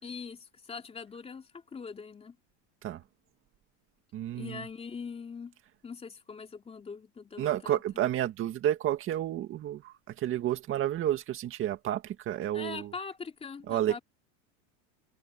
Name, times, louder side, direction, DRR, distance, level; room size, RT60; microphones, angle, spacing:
voice 1, 0.0-2.4 4.3-5.6 5.8-7.8 12.5-14.0, left 5 dB, 15° left, 3.3 m, -42 dB
voice 2, 4.1-4.6 7.4-12.9 13.7-14.0, right 12 dB, 35° right, 2.1 m, -31 dB
supercardioid pair, 145°, 36 cm